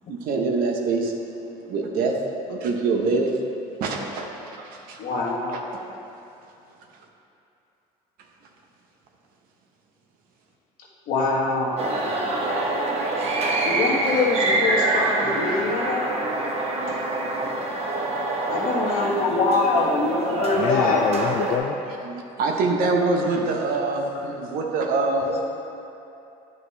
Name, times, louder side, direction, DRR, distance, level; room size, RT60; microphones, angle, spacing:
voice 1, 0.1-1.1 1.6-2.2 2.5-3.3 3.8-5.0 5.5-5.6 22.0-25.4, right 3 dB, 65° right, 1 dB, 1.0 m, -24 dB
voice 2, 5.0-5.6 11.1-11.7 13.6-16.0 18.5-21.0, left 3 dB, 65° left, -4 dB, 1.5 m, -24 dB
sound 1, 11.8-21.6, right 2 dB, 40° right, 1.0 m, -25 dB
voice 3, 20.4-21.9 25.2-25.4, left 8 dB, 45° left, 3 dB, 0.4 m, -27 dB
9.5 x 5.3 x 3.3 m, 2.8 s
cardioid pair, 110°, 16 cm